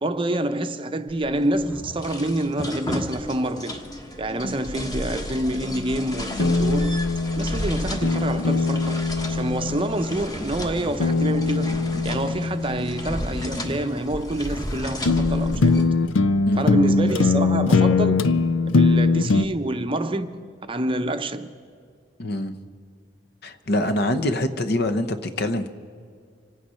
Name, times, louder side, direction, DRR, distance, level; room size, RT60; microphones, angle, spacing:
voice 1, 0.0-3.8 4.2-7.0 7.4-9.0 9.3-11.8 12.0-15.9 16.5-18.3 18.8-20.4 20.7-21.5, right 1 dB, 25° right, 0.7 m, -27 dB
sound 1, 1.1-15.8, equal, 20° left, 1.3 m, -33 dB
sound 2, 6.4-10.2 11.0-13.7 14.5-14.6 15.1-19.5, left 3 dB, 75° left, 0.5 m, -21 dB
voice 2, 22.2-22.5 23.4-25.7, left 1 dB, 55° left, 0.9 m, -25 dB
26.5 x 9.2 x 5.6 m
head